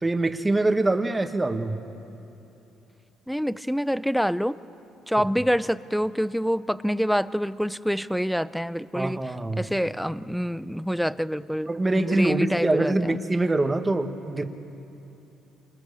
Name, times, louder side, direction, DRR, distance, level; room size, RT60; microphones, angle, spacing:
voice 1, 0.0-1.8 8.9-9.6 11.6-14.4, right 2 dB, 15° right, 6 dB, 1.4 m, -24 dB
voice 2, 3.3-4.6 5.1-9.2 9.6-13.2, equal, ahead, 16 dB, 0.5 m, -26 dB
28.5 x 26.0 x 6.9 m, 2.9 s
cardioid pair, 120°, 0 cm